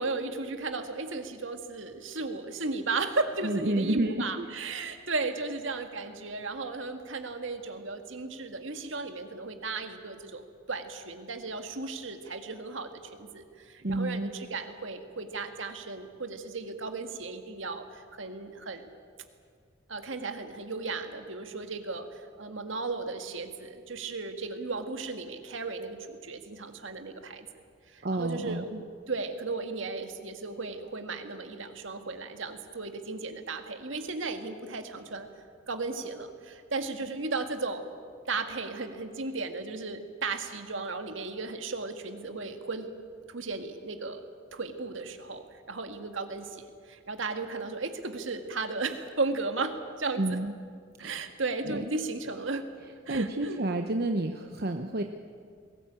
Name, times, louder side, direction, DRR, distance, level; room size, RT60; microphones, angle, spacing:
voice 1, 0.0-18.9 19.9-27.5 27.9-28.7 29.1-35.3 35.7-37.9 38.3-42.9 43.3-44.2 44.5-50.4 51.0-52.6 53.1-53.6, right 3 dB, 70° right, 6 dB, 1.9 m, -35 dB
voice 2, 3.4-4.5 13.8-14.3 28.0-28.8 50.2-50.5 51.0-51.2 51.6-51.8 53.1-55.0, right 1 dB, 50° right, 5 dB, 0.9 m, -30 dB
21.0 x 18.5 x 8.8 m, 2.1 s
head